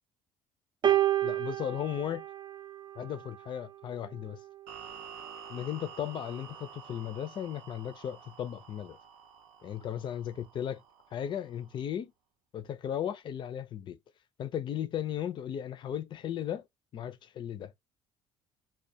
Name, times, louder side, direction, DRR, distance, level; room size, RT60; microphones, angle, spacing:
sound 1, 0.8-3.3 4.3-4.5, right 12 dB, 45° right, 0.4 m, -30 dB
voice 1, 1.2-2.2 3.0-4.4 5.5-9.0 9.6-10.8 11.1-12.1 12.5-14.0 14.4-16.6 16.9-17.7, left 10 dB, 45° left, 0.4 m, -36 dB
sound 2, 4.7-11.8, right 7 dB, 90° right, 0.6 m, -50 dB
2.2 x 2.2 x 2.7 m
supercardioid pair, 85°, 11 cm